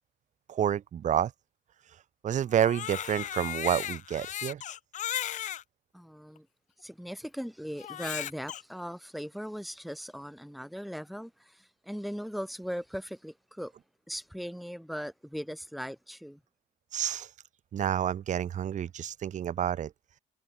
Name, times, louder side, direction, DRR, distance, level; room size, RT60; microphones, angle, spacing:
voice 1, 0.5-1.3 2.2-4.6 16.9-17.3 17.7-19.9, right 10 dB, 45° right, 1.1 m, -29 dB
Crying sobbing, 2.5-5.6 6.4-6.5 7.8-8.6, left 11 dB, 45° left, 0.5 m, -36 dB
voice 2, 5.9-6.5 6.8-13.7 14.1-16.4, equal, ahead, 6.0 m, -39 dB
cardioid pair, 110°, 17 cm